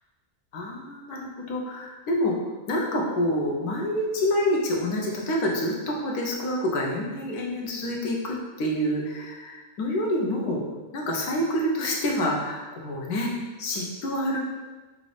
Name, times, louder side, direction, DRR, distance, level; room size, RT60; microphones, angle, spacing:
voice 1, 0.5-2.4 2.7-10.6 10.9-13.3 13.6-14.4, left 1 dB, 85° left, -2 dB, 1.3 m, -27 dB
6.1 x 2.6 x 3.3 m, 1.2 s
omnidirectional pair, 1.6 m